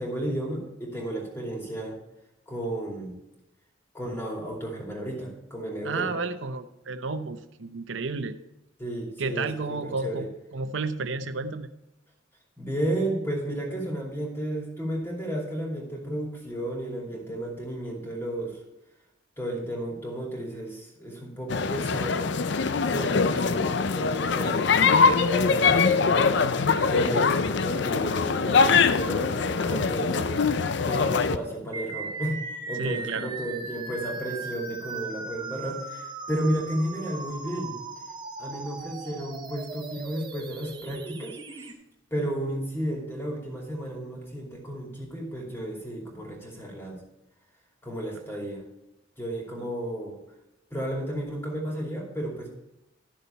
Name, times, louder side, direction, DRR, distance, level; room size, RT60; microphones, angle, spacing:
voice 1, 0.0-2.0 2.5-3.1 3.9-6.2 8.8-10.3 12.6-18.6 19.4-22.3 22.9-26.4 26.9-30.4 30.8-37.8 38.4-41.7 42.1-47.0 47.8-48.6 49.2-50.2 50.7-52.5, right 1 dB, 10° left, -1 dB, 2.6 m, -33 dB
voice 2, 5.8-8.4 9.2-11.7 32.8-33.3 49.6-49.7, right 3 dB, 70° right, 10 dB, 0.7 m, -32 dB
sound 1, 21.5-31.4, left 5 dB, 60° left, 0.5 m, -23 dB
sound 2, 31.7-41.7, right 4 dB, 20° right, 0.8 m, -38 dB
12.5 x 6.8 x 4.4 m, 0.91 s
head